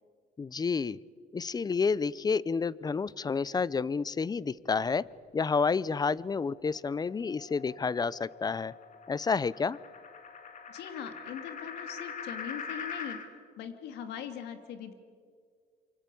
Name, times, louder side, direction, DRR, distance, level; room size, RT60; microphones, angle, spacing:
voice 1, 0.4-1.0 1.3-5.1 5.3-8.7 9.1-9.8, left 5 dB, 25° left, 21 dB, 0.6 m, -30 dB
sound 1, 6.5-13.3, left 5 dB, 50° left, 3.2 m, -43 dB
voice 2, 10.7-13.2 13.6-14.9, left 8 dB, 80° left, 8 dB, 2.9 m, -41 dB
27.0 x 24.5 x 8.6 m, 2.1 s
cardioid pair, 110°, 17 cm